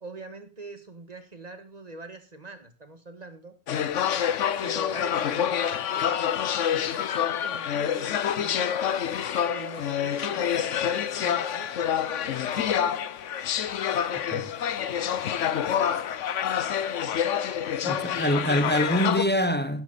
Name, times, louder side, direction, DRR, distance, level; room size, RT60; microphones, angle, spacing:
voice 1, 0.0-3.6 4.6-6.2 6.6-9.1 9.4-12.5, right 2 dB, 30° right, 1.7 m, -43 dB
sound 1, 3.7-19.2, left 9 dB, 70° left, 1.1 m, -27 dB
voice 2, 17.9-19.8, equal, 10° left, 0.8 m, -25 dB
12.0 x 11.0 x 4.0 m
omnidirectional pair, 1.4 m